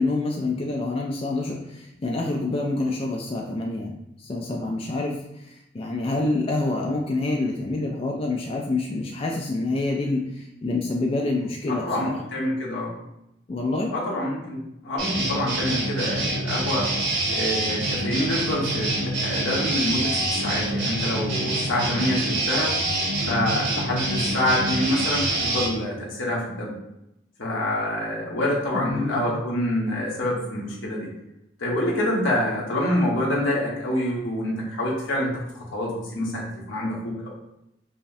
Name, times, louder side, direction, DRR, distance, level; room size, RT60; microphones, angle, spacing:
voice 1, 0.0-12.2 13.5-13.9 28.7-29.2, left 2 dB, 30° left, 0 dB, 0.3 m, -27 dB
voice 2, 11.7-12.9 13.9-16.9 17.3-22.7 23.3-26.7 27.4-31.1 31.6-37.3, left 1 dB, 80° left, -4 dB, 1.2 m, -26 dB
sound 1, 15.0-25.7, right 1 dB, 65° right, 1.4 m, -26 dB
5.4 x 2.1 x 2.7 m, 0.86 s
head